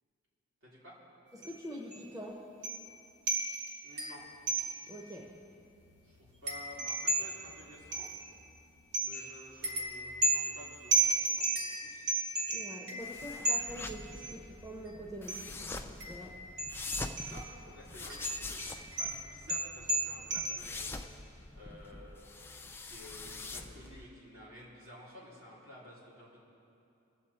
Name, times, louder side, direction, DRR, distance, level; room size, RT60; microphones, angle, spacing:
voice 1, 0.6-1.0 3.8-4.3 6.0-8.1 9.0-12.0 16.2-16.3 17.3-18.6 19.0-26.4, equal, 70° right, -6 dB, 3.2 m, -53 dB
voice 2, 1.3-2.5 4.9-5.4 12.5-16.4, equal, 15° right, -2 dB, 0.9 m, -45 dB
sound 1, 1.4-1.6 1.9-2.0 2.6-3.0 3.3-5.0 5.4-5.5 5.8-8.5 8.9-14.3 15.3-15.5 16.0-17.6 18.1-20.6, right 2 dB, 50° right, 1.6 m, -34 dB
sound 2, 13.0-24.1, left 3 dB, 10° left, 0.3 m, -45 dB
21.0 x 7.4 x 4.3 m, 2.7 s
head